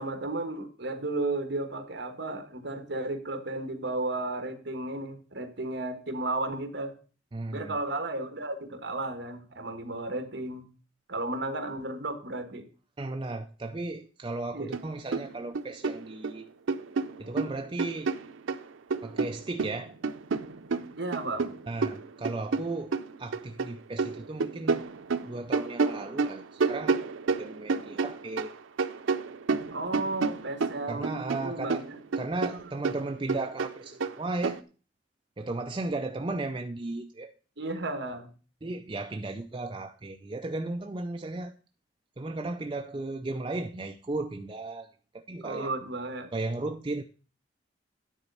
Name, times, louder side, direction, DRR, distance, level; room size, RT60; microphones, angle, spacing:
voice 1, 0.0-6.9 7.5-10.7 11.1-12.6 14.5-14.7 21.0-21.5 29.7-31.9 32.5-32.7 37.6-38.3 45.4-46.3, right 2 dB, 60° right, 1.3 m, -34 dB
voice 2, 7.3-7.8 13.0-16.5 17.2-18.1 19.0-19.9 21.7-24.8 25.3-28.5 30.9-31.9 32.2-34.6 35.4-37.3 38.6-41.5 42.2-44.9 45.1-45.7 46.3-47.0, right 2 dB, 25° right, 0.4 m, -35 dB
sound 1, 14.7-14.9 15.1-16.3 16.7-18.6 18.9-23.7 24.0-28.5 28.8-31.4 31.7-34.6, right 4 dB, 85° right, 0.6 m, -30 dB
10.0 x 4.1 x 6.6 m
head